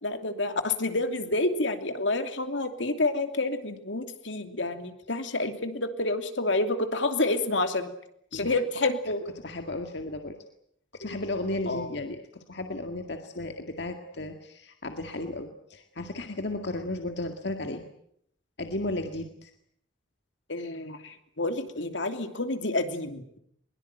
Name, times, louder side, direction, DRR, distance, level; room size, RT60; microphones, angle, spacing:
voice 1, 0.0-7.9 8.3-9.3 11.0-11.2 11.7-11.9 20.5-23.4, left 2 dB, 80° left, 7 dB, 2.8 m, -29 dB
voice 2, 9.4-10.4 11.0-17.9 18.6-19.5, left 2 dB, 65° left, 5 dB, 2.0 m, -34 dB
22.5 x 22.0 x 9.0 m, 0.72 s
head